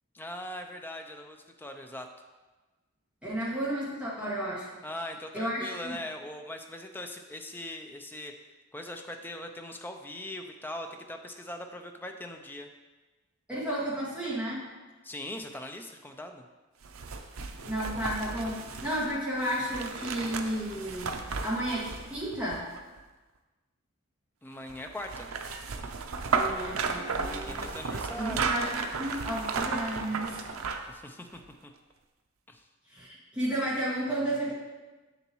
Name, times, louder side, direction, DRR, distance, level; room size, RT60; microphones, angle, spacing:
voice 1, 0.1-2.1 4.8-8.3 8.7-12.7 15.0-16.5 24.4-25.3 27.4-28.5 30.9-31.7 32.5-32.6, left 1 dB, 10° left, 4 dB, 0.4 m, -41 dB
voice 2, 3.2-4.7 5.3-6.0 13.5-14.6 17.6-21.1 21.4-22.6 26.3-27.7 28.1-30.5 32.9-34.5, right 1 dB, 5° right, -9 dB, 2.0 m, -32 dB
sound 1, 16.8-23.0 24.7-31.0 31.4-31.5, right 4 dB, 90° right, 0.6 m, -34 dB
7.0 x 6.8 x 3.1 m, 1.2 s
head